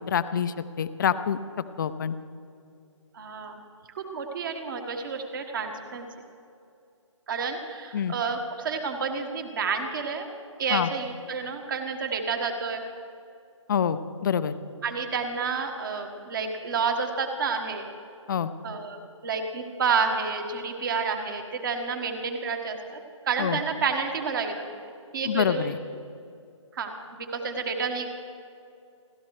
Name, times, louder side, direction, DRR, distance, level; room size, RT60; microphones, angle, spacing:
voice 1, 0.0-1.4 1.8-2.1 7.9-8.1 10.7-10.9 13.7-14.5 18.3-18.5 23.4-23.6 25.3-25.8, left 8 dB, 40° left, 12 dB, 0.6 m, -26 dB
voice 2, 3.1-3.6 3.9-6.1 7.3-10.3 10.6-12.8 14.8-17.9 18.6-23.0 23.2-25.7 26.7-28.1, right 5 dB, 40° right, 4 dB, 1.5 m, -30 dB
29.5 x 12.5 x 3.2 m, 2.5 s
hypercardioid pair, 155°, 17 cm